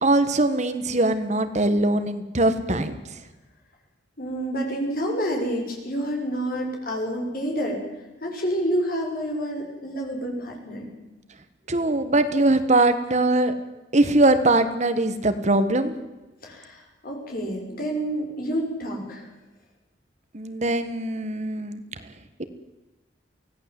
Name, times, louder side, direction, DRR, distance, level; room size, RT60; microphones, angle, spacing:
voice 1, 0.0-3.2 11.7-13.5 13.9-15.9 20.3-21.8, right 2 dB, 40° right, 10 dB, 1.5 m, -21 dB
voice 2, 4.2-7.8 8.2-10.9 16.4-19.3, equal, 50° left, 1 dB, 6.5 m, -28 dB
24.0 x 17.0 x 7.7 m, 1.1 s
head